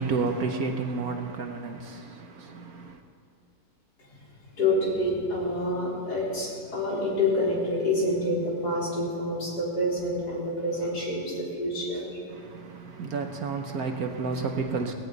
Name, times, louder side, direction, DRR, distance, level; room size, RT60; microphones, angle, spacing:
voice 1, 0.0-3.0 12.3-14.9, right 4 dB, 60° right, 1.3 m, -31 dB
voice 2, 4.6-12.2 12.8-12.9, left 1 dB, 60° left, 4.5 m, -27 dB
19.0 x 16.5 x 4.0 m
omnidirectional pair, 2.0 m